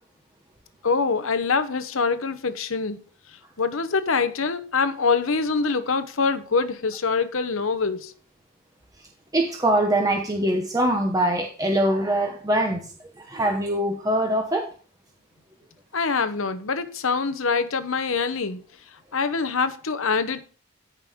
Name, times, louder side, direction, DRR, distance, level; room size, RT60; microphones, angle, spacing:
voice 1, 0.8-3.0 3.6-8.1 15.9-18.6 19.1-20.4, left 4 dB, 65° left, 0.9 m, -24 dB
voice 2, 9.3-14.7, right 1 dB, 15° right, 0.9 m, -23 dB
14.0 x 5.4 x 3.6 m
head